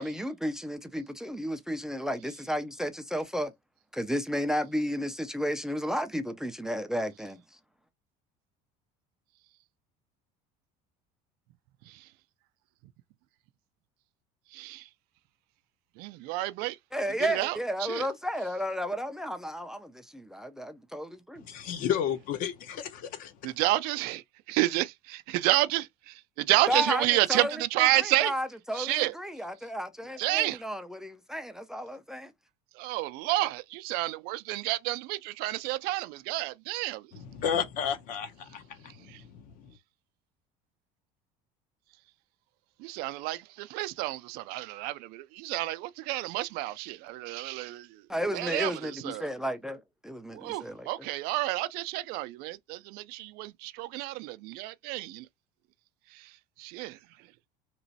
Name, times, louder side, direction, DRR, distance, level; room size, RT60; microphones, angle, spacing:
voice 1, 0.0-3.5 3.9-7.4 16.9-21.4 26.7-27.5 28.0-32.3 48.1-50.9, equal, 5° right, 0.3 m, -33 dB
voice 2, 14.5-14.9 16.0-16.8 17.2-18.1 23.4-28.3 28.7-29.1 30.2-30.6 32.7-37.1 38.8-39.2 42.8-48.1 48.3-49.3 50.3-55.3 56.1-57.3, right 18 dB, 65° right, 0.4 m, -30 dB
voice 3, 21.4-23.3 37.3-39.7, left 8 dB, 55° left, 0.7 m, -32 dB
3.0 x 2.9 x 2.7 m
cardioid pair, 145°, 17 cm